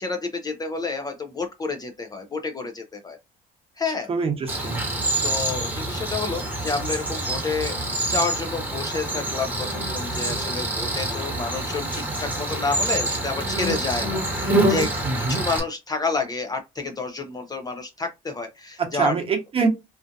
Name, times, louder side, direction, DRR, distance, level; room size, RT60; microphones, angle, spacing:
voice 1, 0.0-3.2 3.8-4.1 5.2-7.8 8.1-14.9 15.3-19.2, left 4 dB, 25° left, 0.4 m, -29 dB
voice 2, 4.1-4.8 15.0-15.4 18.9-19.7, right 4 dB, 35° right, 0.9 m, -24 dB
Cricket, 4.5-15.6, right 1 dB, 10° right, 1.0 m, -26 dB
2.5 x 2.4 x 2.5 m
cardioid pair, 110°, 17 cm